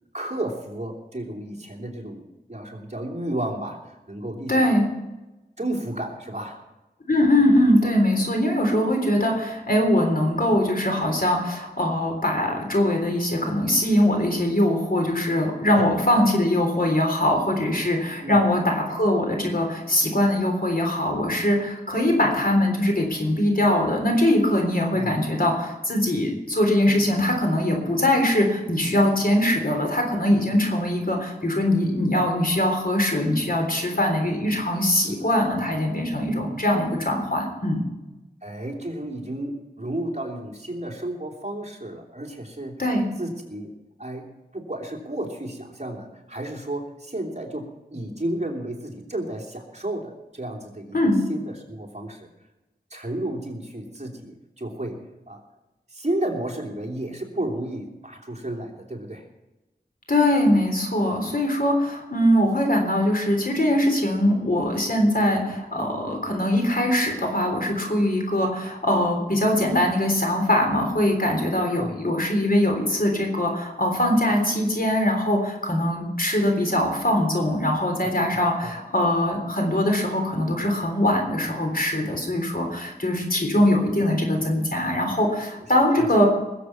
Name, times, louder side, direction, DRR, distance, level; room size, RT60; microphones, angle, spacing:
voice 1, 0.1-4.7 5.6-6.6 15.7-15.9 18.2-18.5 24.9-25.3 35.1-35.3 38.4-42.7 43.2-43.7 44.0-52.3 52.9-55.0 55.3-55.4 55.9-59.2 71.8-72.0 78.0-78.7 85.7-86.2, right 1 dB, 40° right, 0 dB, 3.1 m, -32 dB
voice 2, 4.5-4.9 7.1-37.9 42.8-43.1 50.9-51.2 60.1-86.3, left 1 dB, 60° left, 2 dB, 3.6 m, -22 dB
20.5 x 7.7 x 6.0 m, 1.1 s
wide cardioid pair, 50°, 17 cm